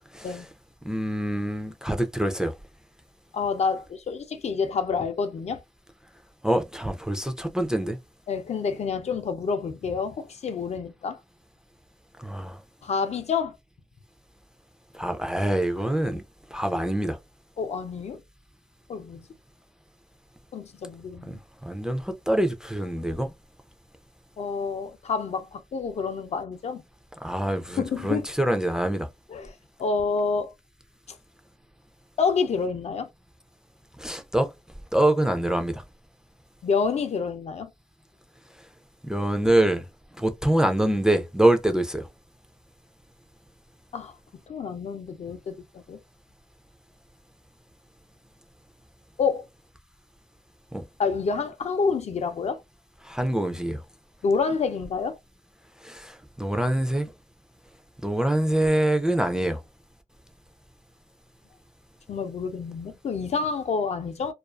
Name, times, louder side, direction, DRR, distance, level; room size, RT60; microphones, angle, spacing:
voice 1, 0.1-0.5 0.8-2.5 6.4-8.0 12.2-12.6 14.9-16.2 16.5-17.2 21.3-23.3 27.2-29.1 34.0-34.5 34.9-35.8 39.0-39.9 40.1-42.1 50.7-50.8 53.0-53.8 55.8-57.1 58.0-59.6, right 1 dB, 5° right, 0.3 m, -25 dB
voice 2, 3.3-5.6 8.3-11.2 12.8-13.6 17.6-18.2 18.9-19.3 20.5-21.4 24.4-26.8 27.8-28.3 29.3-29.5 29.8-30.5 32.2-33.1 36.6-37.7 43.9-44.1 44.5-46.0 49.2-49.4 51.0-52.6 54.2-55.2 62.1-64.3, left 5 dB, 65° left, 0.4 m, -28 dB
2.3 x 2.3 x 2.3 m
wide cardioid pair, 170°, 12 cm